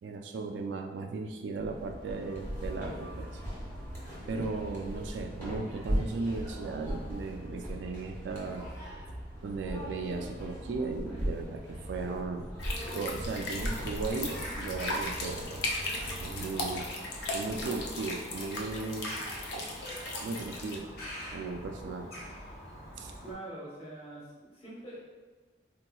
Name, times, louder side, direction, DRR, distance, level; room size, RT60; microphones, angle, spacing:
voice 1, 0.0-3.4 4.3-8.7 9.4-15.7 16.0-16.9 17.3-19.2 19.5-19.7 20.1-20.9 21.3-22.4 23.0-23.1, right 3 dB, 80° right, 4 dB, 0.3 m, -37 dB
sound 1, 1.5-16.9, equal, 15° left, 1.2 m, -39 dB
sound 2, 12.6-20.8, left 2 dB, 70° left, 0.5 m, -37 dB
Bird vocalization bird call bird song, 13.5-23.3, equal, 55° left, 1.1 m, -44 dB
voice 2, 23.2-25.0, right 1 dB, 35° left, -7 dB, 1.1 m, -44 dB
3.8 x 2.8 x 2.2 m, 1.3 s
head